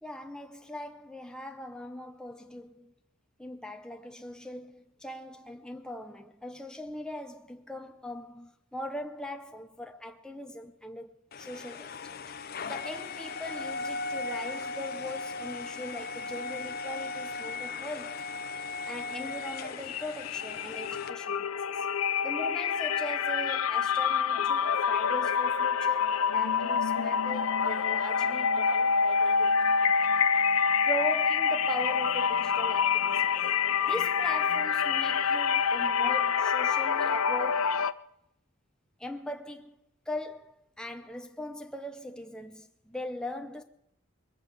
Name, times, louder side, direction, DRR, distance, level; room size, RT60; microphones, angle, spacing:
voice 1, 0.0-2.9 3.4-18.2 18.6-21.9 22.2-30.1 30.8-33.3 33.8-37.8 39.0-39.8 40.1-43.6, left 1 dB, 5° left, 0.7 m, -40 dB
hydraulic lifter up, 11.3-21.1, left 3 dB, 45° left, 0.7 m, -37 dB
sound 1, 19.3-19.5 19.8-37.9, left 6 dB, 85° left, 0.5 m, -27 dB
21.5 x 7.9 x 6.6 m
head